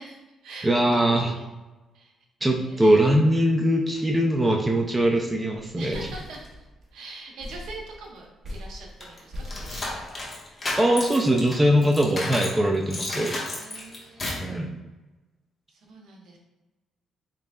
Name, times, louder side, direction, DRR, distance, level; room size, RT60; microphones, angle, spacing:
voice 1, 0.0-1.5 1.9-2.1 2.4-3.2 5.8-6.6 6.9-10.2 13.6-14.6 15.7-16.4, right 3 dB, 75° right, 0 dB, 0.8 m, -43 dB
voice 2, 0.6-1.3 2.4-6.0 10.8-13.4 14.4-14.8, right 1 dB, 15° right, 1 dB, 0.4 m, -21 dB
sound 1, 3.9-4.1 4.4-4.5 4.8-5.2 5.5-6.9 7.4-10.7, left 1 dB, 45° right, 0.8 m, -41 dB
sound 2, 9.0-12.6 12.9-14.5, left 2 dB, 30° left, 1.0 m, -32 dB
3.8 x 3.1 x 2.3 m, 1.1 s
cardioid pair, 90°, 0 cm